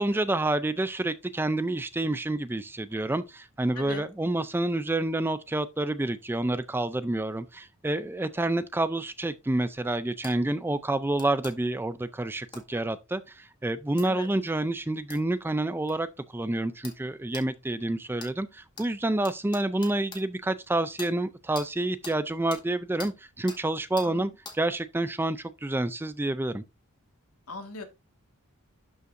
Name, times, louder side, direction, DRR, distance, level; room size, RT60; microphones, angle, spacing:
voice 1, 0.0-26.6, right 2 dB, 10° right, 0.4 m, -28 dB
voice 2, 3.8-4.1 14.0-14.3 24.0-24.3 27.5-27.8, left 3 dB, 85° left, 1.8 m, -39 dB
sound 1, 10.2-10.4 11.2-11.5 12.5-12.7 14.0-14.1 15.1-15.2 15.9-16.0 16.8-17.0 17.3-17.5 18.2-18.3 18.8-18.9 19.2-20.2 21.0-21.1 21.5-21.7 22.0-22.2 22.5-22.6 23.0-23.1 23.5-23.6 24.0-24.1 24.4-24.6, left 3 dB, 20° left, 1.9 m, -42 dB
12.0 x 5.6 x 2.6 m
head